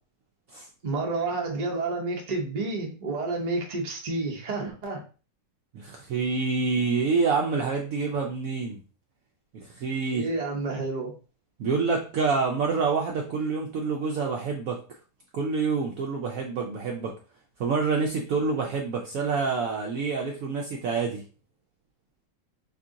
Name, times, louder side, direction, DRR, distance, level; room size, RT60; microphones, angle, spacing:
voice 1, 0.8-5.0 10.1-11.1, right 3 dB, 45° right, 0 dB, 0.5 m, -30 dB
voice 2, 5.7-8.8 9.5-10.3 11.6-14.8 15.3-17.1 17.6-21.2, right 4 dB, 70° right, 0 dB, 0.8 m, -27 dB
2.9 x 2.7 x 3.6 m, 0.35 s
omnidirectional pair, 1.9 m